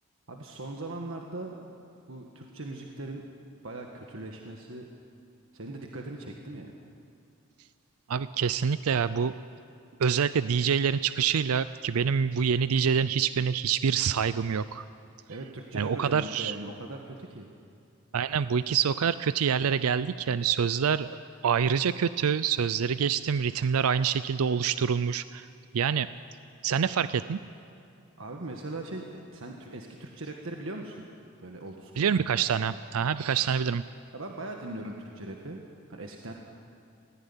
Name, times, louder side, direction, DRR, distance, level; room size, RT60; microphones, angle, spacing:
voice 1, 0.3-1.6 2.1-3.2 3.6-4.9 5.5-6.7 15.3-17.5 26.8-26.9 28.2-31.0 31.4-32.1 34.1-36.3, right 2 dB, 65° right, 1 dB, 1.5 m, -40 dB
voice 2, 8.1-9.3 10.0-14.8 15.7-16.5 18.1-21.2 21.4-25.5 25.7-26.1 26.6-27.4 32.0-33.8, right 7 dB, 90° right, 14 dB, 0.5 m, -26 dB
18.0 x 16.5 x 9.8 m, 2.5 s
head